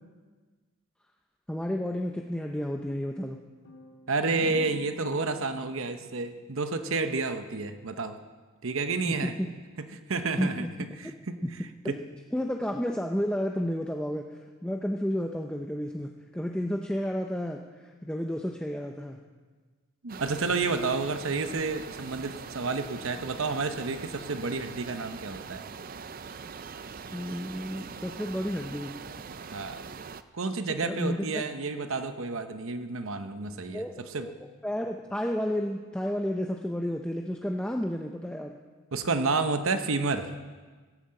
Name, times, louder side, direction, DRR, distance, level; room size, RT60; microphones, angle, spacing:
voice 1, 1.5-3.4 9.0-9.5 10.4-10.7 11.4-11.5 11.8-12.0 12.3-19.2 27.1-28.9 30.8-31.4 33.7-33.9 34.2-34.3 34.6-38.6, equal, 5° left, 2 dB, 0.6 m, -31 dB
sound 1, 3.6-7.3, equal, 90° left, 2.1 m, -46 dB
voice 2, 4.1-8.2 8.6-9.4 9.8-10.7 11.0-11.4 11.8-12.0 20.0-25.6 29.5-29.8 30.3-34.3 38.9-40.3, right 3 dB, 70° right, 8 dB, 0.8 m, -30 dB
sound 2, 20.1-30.2, right 5 dB, 40° right, 0.4 m, -42 dB
17.0 x 8.6 x 7.7 m, 1.4 s
head